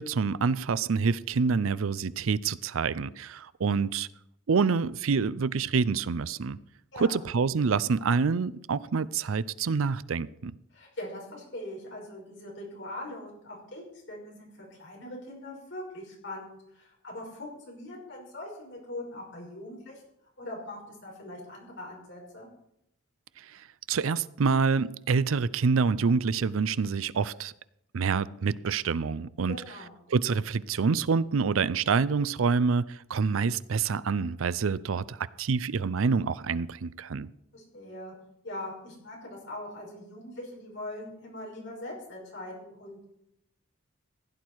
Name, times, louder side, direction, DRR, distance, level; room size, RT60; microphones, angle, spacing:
voice 1, 0.0-4.1 4.5-6.6 6.9-10.5 23.4-27.5 27.9-29.6 30.1-37.3, right 5 dB, 85° right, 0.5 m, -27 dB
voice 2, 10.7-13.8 14.1-14.5 14.8-20.0 20.4-22.5 29.5-29.9 37.5-38.1 38.4-43.1, left 1 dB, 60° left, 5.7 m, -41 dB
16.0 x 10.5 x 4.7 m
head